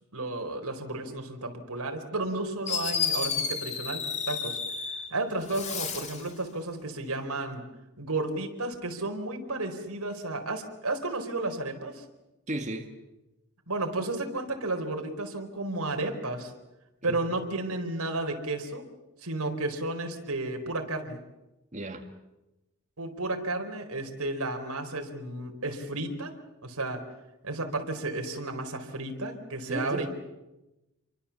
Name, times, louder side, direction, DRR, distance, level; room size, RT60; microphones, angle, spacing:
voice 1, 0.1-4.6 5.1-7.6 8.0-12.0 13.7-16.5 17.0-18.9 19.2-21.2 23.0-26.3 26.6-27.0 27.4-30.1, right 2 dB, 90° right, 4.3 m, -32 dB
Fireworks, 2.2-2.3 2.7-5.1 5.4-6.3, left 6 dB, 30° left, 2.6 m, -31 dB
voice 2, 12.5-12.9 17.1-17.2 21.7-22.1 29.7-30.1, right 1 dB, 30° right, 1.8 m, -34 dB
29.0 x 24.0 x 7.2 m
head